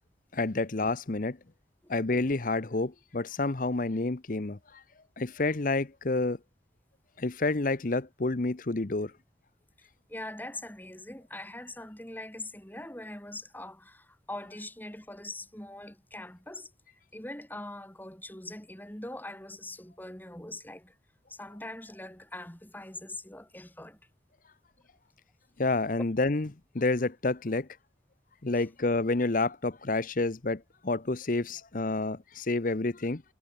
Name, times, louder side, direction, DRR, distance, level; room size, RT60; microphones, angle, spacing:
voice 1, 0.3-1.4 1.9-4.8 5.2-6.4 7.2-9.1 25.6-26.5 26.7-27.7 28.4-33.2, left 2 dB, 50° left, 0.9 m, -29 dB
voice 2, 9.8-16.7 17.1-21.0 21.3-24.0 28.5-28.6, left 1 dB, 10° left, 2.7 m, -42 dB
head